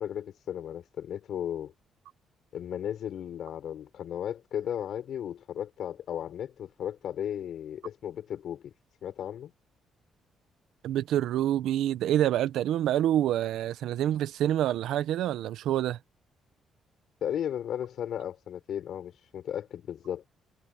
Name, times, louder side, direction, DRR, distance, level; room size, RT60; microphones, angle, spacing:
voice 1, 0.0-1.7 2.5-8.7 9.0-9.5 17.2-20.3, left 10 dB, 70° left, 4.9 m, -35 dB
voice 2, 10.8-16.0, right 12 dB, 80° right, 0.9 m, -27 dB
cardioid pair, 90°, 0 cm